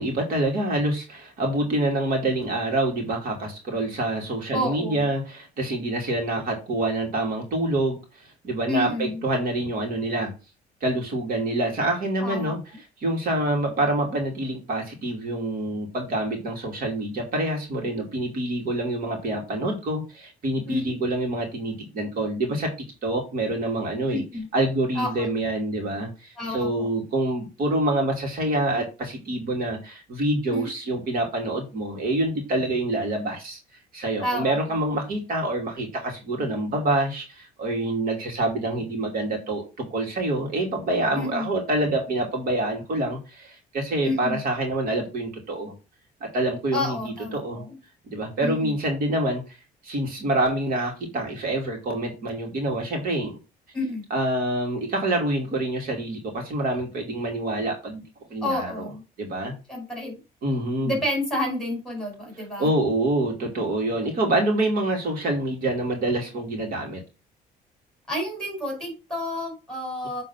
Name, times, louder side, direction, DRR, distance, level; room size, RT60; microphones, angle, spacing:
voice 1, 0.0-10.3 10.8-12.6 13.0-24.2 24.5-33.6 33.9-45.7 46.2-47.6 48.1-53.4 54.1-58.0 58.3-58.9 59.2-59.5 60.4-61.0 62.6-67.0, right 1 dB, 60° right, 1 dB, 2.7 m, -26 dB
voice 2, 4.5-5.1 8.7-9.2 12.2-12.6 20.7-20.9 24.1-24.5 24.9-25.3 26.4-26.9 30.5-30.7 34.2-34.6 41.1-41.5 44.0-44.4 46.7-47.8 48.4-48.7 53.7-54.0 58.4-59.0 59.7-60.2 60.8-62.7 68.1-70.2, left 1 dB, 5° left, 1 dB, 5.0 m, -30 dB
7.6 x 3.8 x 5.8 m, 0.31 s
cardioid pair, 110°, 17 cm